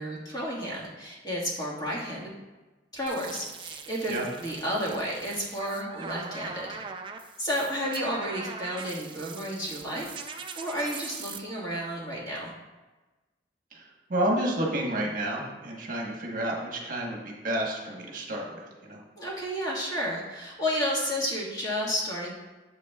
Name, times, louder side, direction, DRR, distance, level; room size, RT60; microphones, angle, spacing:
voice 1, 0.0-2.3 2.9-6.8 7.4-10.1 10.3-12.5 19.2-22.3, equal, 20° left, -5 dB, 1.6 m, -32 dB
sound 1, 3.1-11.4, right 5 dB, 30° right, 0.4 m, -42 dB
voice 2, 14.1-19.0, right 1 dB, 50° right, -1 dB, 1.2 m, -30 dB
8.2 x 7.2 x 2.3 m, 1.2 s
head